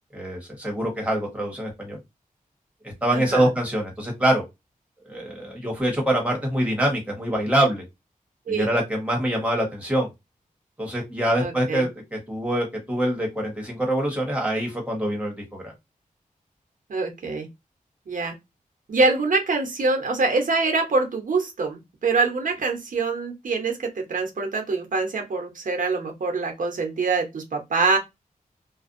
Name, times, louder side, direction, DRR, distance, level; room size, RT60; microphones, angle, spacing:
voice 1, 0.1-2.0 3.0-4.4 5.0-7.8 8.5-10.1 10.8-15.7, right 1 dB, 10° right, 1.2 m, -25 dB
voice 2, 3.1-3.5 8.5-8.7 11.4-11.8 16.9-17.5 18.1-18.3 18.9-28.0, right 3 dB, 65° right, 0.8 m, -24 dB
2.4 x 2.2 x 2.5 m
wide cardioid pair, 100°, 14 cm